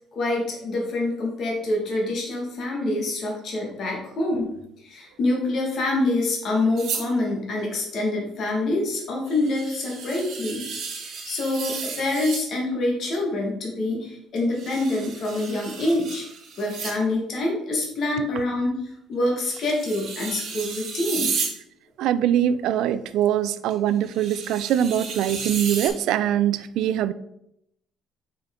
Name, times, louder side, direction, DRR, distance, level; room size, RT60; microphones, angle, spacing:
voice 1, 0.1-4.5 4.8-10.6 11.0-16.2 16.6-21.3, left 2 dB, 40° left, -1 dB, 1.5 m, -26 dB
sound 1, 6.8-7.1 8.9-9.0 9.3-12.4 14.3-17.0 17.8-17.9 19.5-21.6 23.7-23.8 24.1-25.9, right 5 dB, 50° right, 1.7 m, -33 dB
voice 2, 22.0-27.1, right 10 dB, 70° right, 14 dB, 0.4 m, -23 dB
5.6 x 5.2 x 3.6 m, 0.77 s
cardioid pair, 175°, 0 cm